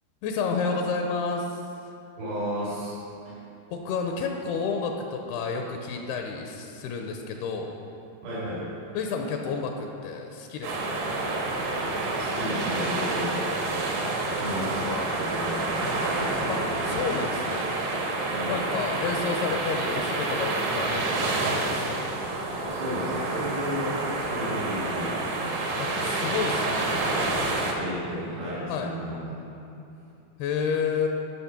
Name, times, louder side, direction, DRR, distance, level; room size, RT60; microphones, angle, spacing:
voice 1, 0.2-1.7 3.7-7.8 8.9-10.9 16.5-17.7 18.5-22.1 25.8-27.0 28.7-28.9 30.4-31.1, left 5 dB, 85° left, 3 dB, 2.5 m, -30 dB
voice 2, 2.2-3.0 3.2-3.4 8.2-8.7 12.2-16.3 18.3-18.6 22.7-25.2 27.7-29.3, equal, 80° right, -10 dB, 4.9 m, -33 dB
sound 1, 10.6-27.7, right 2 dB, 65° right, 1.9 m, -28 dB
13.0 x 5.9 x 5.9 m, 2.8 s
omnidirectional pair, 4.8 m